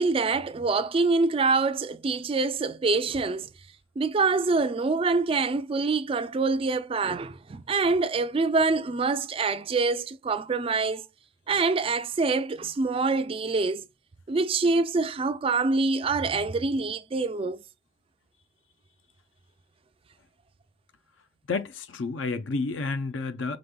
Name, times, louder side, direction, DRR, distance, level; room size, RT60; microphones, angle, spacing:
voice 1, 0.0-3.5 4.0-11.0 11.5-13.9 14.3-17.6, right 3 dB, 25° right, 0.3 m, -25 dB
voice 2, 21.5-23.6, left 3 dB, 70° left, 0.5 m, -30 dB
5.2 x 3.5 x 2.2 m
head